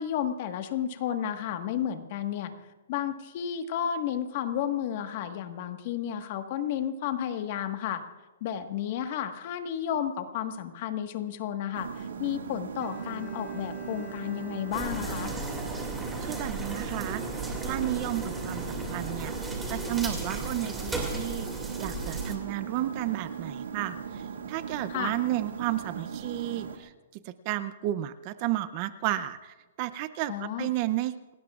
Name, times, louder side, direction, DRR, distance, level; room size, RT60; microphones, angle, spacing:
voice 1, 0.0-2.5 2.9-8.0 8.4-15.3 24.9-25.1 30.3-30.7, left 9 dB, 40° left, 7 dB, 1.4 m, -32 dB
sound 1, 11.7-26.8, right 6 dB, 80° right, 2.1 m, -39 dB
Bowed string instrument, 12.8-16.8, right 3 dB, 10° left, 2.9 m, -48 dB
sound 2, 14.7-22.4, right 2 dB, 5° right, 2.4 m, -35 dB
voice 2, 16.2-21.5 21.8-31.3, right 14 dB, 30° right, 14 dB, 0.6 m, -33 dB
29.0 x 19.0 x 2.4 m, 1.2 s
hypercardioid pair, 165°, 0 cm